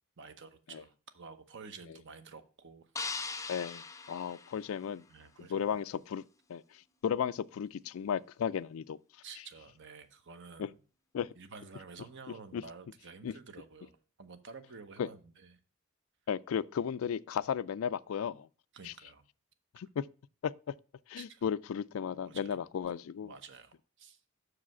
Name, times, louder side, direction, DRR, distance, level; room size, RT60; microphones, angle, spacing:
voice 1, 0.2-2.9 5.1-5.8 9.2-10.8 11.3-15.6 18.7-19.2 21.2-21.5 22.2-22.6 23.2-24.2, right 5 dB, 60° right, 0.9 m, -51 dB
sound 1, 3.0-5.2, left 4 dB, 15° left, 0.5 m, -41 dB
voice 2, 3.5-5.0 5.5-6.2 6.5-6.6 7.0-9.0 10.6-10.7 11.1-11.3 12.5-12.6 13.2-13.3 15.0-15.1 16.3-18.5 18.8-18.9 19.7-20.0 20.4-20.5 21.1-23.3, left 7 dB, 70° left, 0.3 m, -34 dB
6.4 x 4.9 x 5.9 m
head